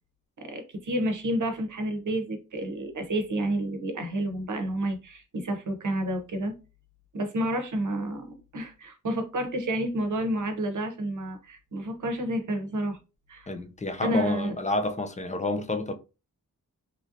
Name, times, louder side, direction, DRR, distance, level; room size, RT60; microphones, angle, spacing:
voice 1, 0.4-6.5 7.1-13.0 13.3-13.5 14.0-14.5, right 1 dB, 60° right, 0.8 m, -30 dB
voice 2, 13.5-15.9, left 2 dB, 20° left, 0.3 m, -29 dB
3.0 x 2.7 x 2.5 m
wide cardioid pair, 115°, 35 cm